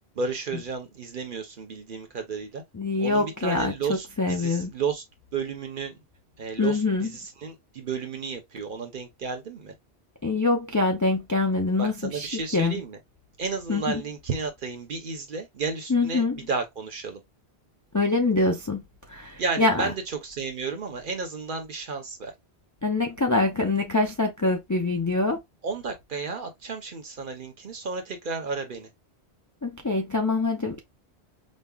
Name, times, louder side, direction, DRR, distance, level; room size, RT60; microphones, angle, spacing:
voice 1, 0.2-2.6 3.0-5.0 5.3-6.0 6.4-9.7 11.8-13.0 13.4-17.2 19.4-22.3 25.6-28.9, right 4 dB, 55° right, 0.9 m, -32 dB
voice 2, 2.7-3.7 4.2-4.7 6.6-7.1 10.2-12.8 13.7-14.0 15.9-16.4 17.9-18.8 19.1-19.9 22.8-25.4 29.6-30.8, left 3 dB, 30° left, 0.3 m, -24 dB
5.3 x 2.1 x 2.3 m
omnidirectional pair, 1.1 m